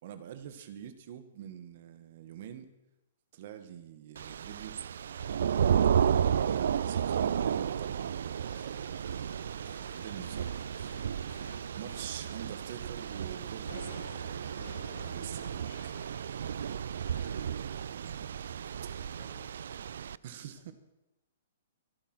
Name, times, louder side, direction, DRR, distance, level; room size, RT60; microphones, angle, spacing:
voice 1, 0.0-2.7 3.3-4.8 5.7-9.0 9.8-10.6 11.8-14.3 15.0-15.9 17.7-18.5 18.8-18.9 20.2-20.7, right 10 dB, 45° right, 11 dB, 1.7 m, -46 dB
Thunder / Rain, 4.2-20.2, right 8 dB, 70° right, 0.4 m, -33 dB
sound 1, 8.4-17.6, left 7 dB, 85° left, 1.2 m, -54 dB
voice 2, 15.4-15.9 16.2-16.4 18.8-18.9 19.2-19.7, left 6 dB, 40° left, 1 dB, 3.8 m, -60 dB
24.5 x 8.7 x 6.2 m, 0.94 s
hypercardioid pair, 170°, 0 cm